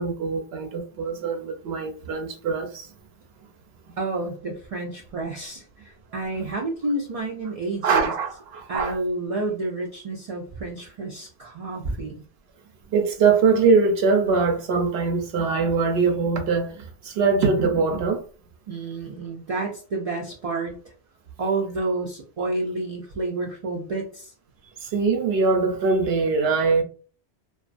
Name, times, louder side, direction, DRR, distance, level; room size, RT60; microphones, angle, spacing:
voice 1, 0.0-2.9 7.8-9.0 12.9-18.2 24.8-26.8, right 4 dB, 75° right, 0.8 m, -22 dB
voice 2, 4.0-8.1 8.7-12.2 18.7-20.9 21.4-24.3, right 2 dB, 55° right, 0.4 m, -30 dB
2.4 x 2.3 x 2.4 m
omnidirectional pair, 1.1 m